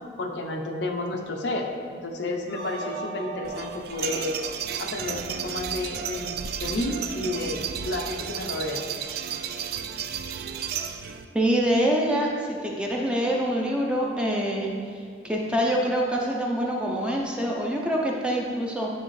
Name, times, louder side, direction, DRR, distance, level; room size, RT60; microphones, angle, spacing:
voice 1, 0.2-4.4 4.8-8.8, left 2 dB, 70° left, 2 dB, 0.6 m, -31 dB
sound 1, 2.5-5.6, right 4 dB, 35° right, 0.9 m, -39 dB
sound 2, 3.4-11.2, right 8 dB, 55° right, 0.3 m, -33 dB
voice 2, 11.3-14.7 15.2-18.9, equal, 5° right, -2 dB, 0.6 m, -25 dB
9.1 x 3.5 x 3.2 m, 2.2 s
head